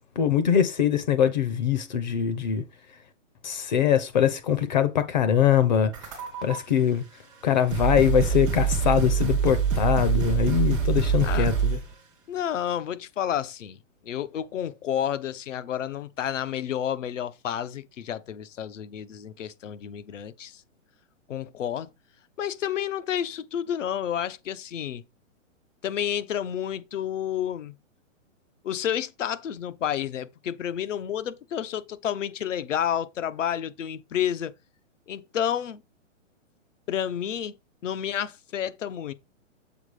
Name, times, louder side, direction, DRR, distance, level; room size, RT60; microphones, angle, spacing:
voice 1, 0.2-2.6 3.4-5.9 6.4-7.0 7.4-11.8, left 9 dB, 35° left, 0.7 m, -23 dB
sound 1, 5.9-6.6 7.3-7.4 7.7-11.9, right 6 dB, 5° right, 0.4 m, -25 dB
voice 2, 12.3-13.8 14.0-20.6 21.3-21.9 22.4-25.0 25.8-27.7 28.6-34.5 35.1-35.8 36.9-37.5 37.8-39.1, left 9 dB, 75° left, 1.0 m, -30 dB
7.2 x 4.2 x 4.9 m
hypercardioid pair, 165°, 37 cm